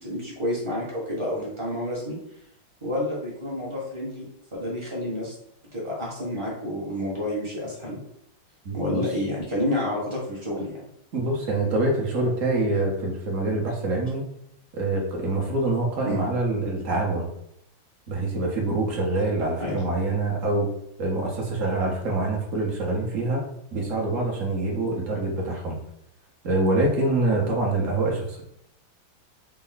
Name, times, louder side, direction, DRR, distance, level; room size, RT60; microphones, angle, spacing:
voice 1, 0.0-2.2 2.8-4.2 4.5-5.3 5.7-8.0 8.7-10.8 16.0-16.2 19.6-19.8, left 1 dB, 25° right, -5 dB, 0.6 m, -29 dB
voice 2, 8.6-9.1 11.1-14.3 14.7-17.3 18.1-20.7 21.0-25.8 26.4-28.4, right 2 dB, 55° right, -1 dB, 1.0 m, -25 dB
4.3 x 2.0 x 3.9 m, 0.74 s
omnidirectional pair, 2.1 m